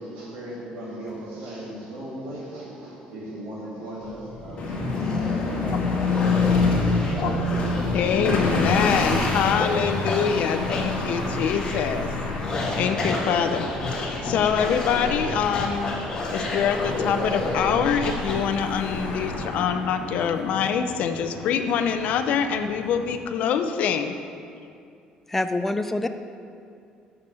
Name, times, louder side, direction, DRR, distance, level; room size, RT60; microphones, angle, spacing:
voice 1, 0.0-5.9 6.2-7.8, right 1 dB, 80° right, 2.6 m, -37 dB
sound 1, 4.0-18.4, left 2 dB, 30° left, 1.6 m, -32 dB
sound 2, 4.6-23.2, left 3 dB, 45° left, 2.0 m, -28 dB
voice 2, 7.9-12.1 12.8-13.7 13.9-15.9 16.3-24.1, left 7 dB, 60° left, 0.6 m, -25 dB
sound 3, 10.2-19.4, left 4 dB, 85° left, 1.3 m, -40 dB
voice 3, 25.3-26.1, left 2 dB, 10° left, 0.4 m, -25 dB
7.0 x 6.5 x 7.0 m
cardioid pair, 145°, 3 cm